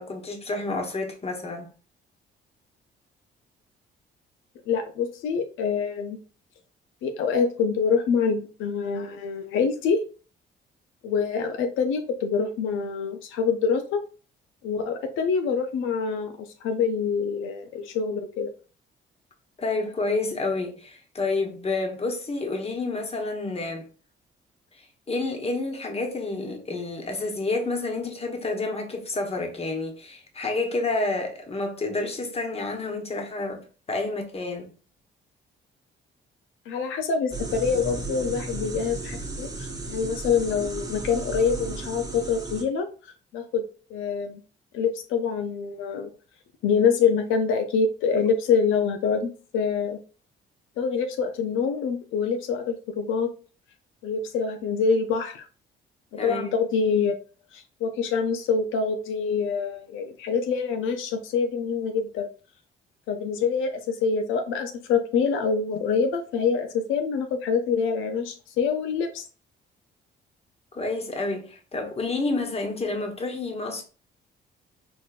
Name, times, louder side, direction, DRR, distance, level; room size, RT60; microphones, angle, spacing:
voice 1, 0.0-1.7 19.6-23.9 24.8-34.7 56.2-56.5 70.7-73.8, left 3 dB, 30° left, 1.1 m, -29 dB
voice 2, 4.7-6.2 7.0-10.0 11.0-14.0 14.6-18.5 36.7-42.9 43.3-43.6 43.9-44.4 44.7-46.1 46.6-50.0 50.8-53.3 54.0-55.5 56.1-57.1 57.5-62.3 63.1-69.2, left 5 dB, 85° left, 0.5 m, -25 dB
sound 1, 37.3-42.6, right 3 dB, 20° right, 1.0 m, -34 dB
4.4 x 2.9 x 2.4 m
cardioid pair, 90°, 20 cm